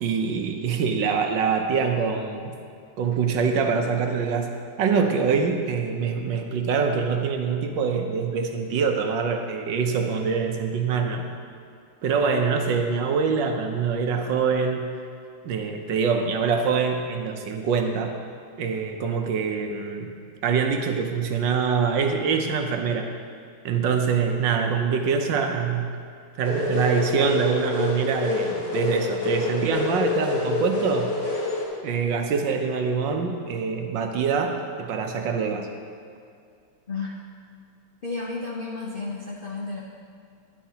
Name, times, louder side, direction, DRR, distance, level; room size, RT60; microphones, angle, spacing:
voice 1, 0.0-2.5 3.0-11.3 12.0-15.0 15.4-18.2 18.6-20.1 20.4-23.1 23.6-25.9 26.4-31.1 31.8-35.7, right 5 dB, 65° right, 4 dB, 1.3 m, -24 dB
sound 1, 26.4-31.7, left 3 dB, 30° left, 2.2 m, -27 dB
voice 2, 38.0-39.8, left 3 dB, 85° left, -4 dB, 0.4 m, -32 dB
13.0 x 10.0 x 2.9 m, 2.4 s
omnidirectional pair, 2.4 m